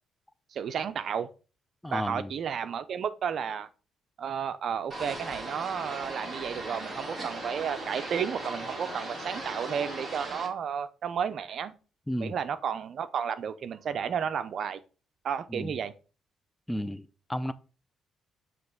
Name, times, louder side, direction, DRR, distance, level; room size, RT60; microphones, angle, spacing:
voice 1, 0.5-1.3 1.9-3.7 4.2-11.7 12.2-14.8 15.2-15.9, right 7 dB, 60° right, 0.6 m, -32 dB
voice 2, 1.8-2.3 12.1-12.3 15.5-15.7 16.7-17.5, equal, 5° left, 0.5 m, -33 dB
sound 1, 4.9-10.2, left 10 dB, 80° left, 0.6 m, -48 dB
sound 2, 4.9-10.5, right 2 dB, 35° right, 2.1 m, -38 dB
7.7 x 3.2 x 5.9 m
cardioid pair, 90°, 0 cm